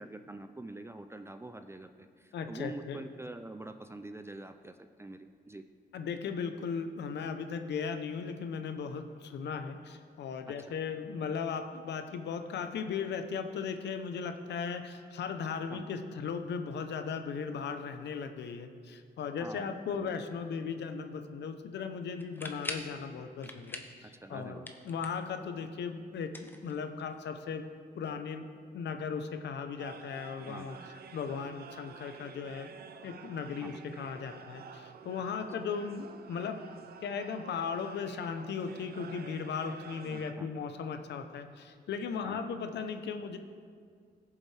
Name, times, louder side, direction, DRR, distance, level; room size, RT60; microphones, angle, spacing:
voice 1, 0.0-5.6 15.7-15.9 19.4-20.1 24.0-24.7 30.5-30.9 33.6-34.0 40.1-40.5 42.2-42.6, right 2 dB, 15° right, 8 dB, 0.4 m, -46 dB
voice 2, 2.3-3.0 5.9-26.3 26.6-27.7 27.9-28.5 28.7-30.8 31.1-32.7 33.0-36.6 37.0-43.4, left 6 dB, 85° left, 8 dB, 0.7 m, -37 dB
sound 1, 22.2-23.0 23.4-24.0 24.3-25.3 26.2-27.2, left 1 dB, 10° left, 0.9 m, -42 dB
sound 2, 29.8-40.3, right 6 dB, 65° right, 0.6 m, -50 dB
16.5 x 7.3 x 3.3 m, 2.1 s
cardioid pair, 95°, 17 cm